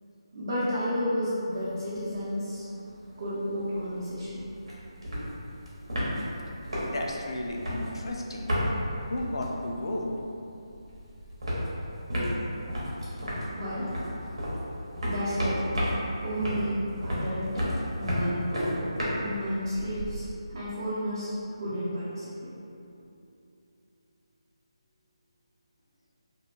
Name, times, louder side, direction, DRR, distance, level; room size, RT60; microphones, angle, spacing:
voice 1, 0.3-2.6 3.2-4.4 12.7-17.6 18.0-18.9 19.2-22.5, equal, 45° right, -10 dB, 0.6 m, -32 dB
sound 1, 1.5-2.2 2.5-2.6 2.8-10.3 10.5-20.3, equal, 85° right, 0.8 m, -33 dB
voice 2, 6.6-8.7 9.1-10.1, left 1 dB, 65° left, 0 dB, 0.4 m, -34 dB
2.7 x 2.1 x 2.4 m, 2.7 s
figure-of-eight pair, 165°, 3 cm